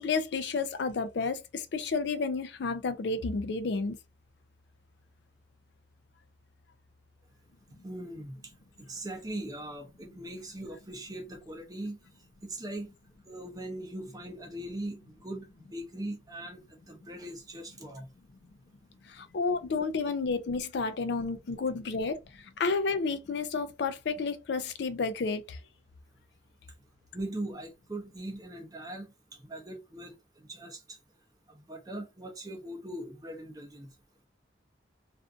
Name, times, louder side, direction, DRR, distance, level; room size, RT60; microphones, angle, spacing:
voice 1, 0.0-4.0 19.1-25.6, left 4 dB, 65° left, 0.4 m, -31 dB
voice 2, 7.8-8.4 8.8-12.0 12.4-12.9 13.3-18.1 27.1-29.1 29.4-31.0 31.5-33.9, right 1 dB, 20° right, 0.6 m, -40 dB
2.5 x 2.4 x 2.4 m
head